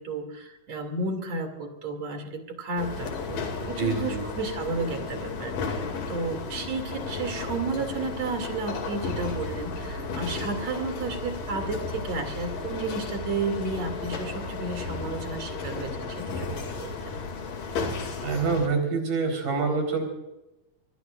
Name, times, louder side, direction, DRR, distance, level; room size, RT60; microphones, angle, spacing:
voice 1, 0.0-17.2, right 3 dB, 55° right, 5 dB, 3.6 m, -32 dB
sound 1, 2.8-18.7, left 4 dB, 75° left, 3.9 m, -34 dB
voice 2, 3.8-4.2 18.2-20.0, right 4 dB, 75° right, 3 dB, 5.7 m, -26 dB
24.5 x 20.0 x 2.5 m, 0.94 s
omnidirectional pair, 3.8 m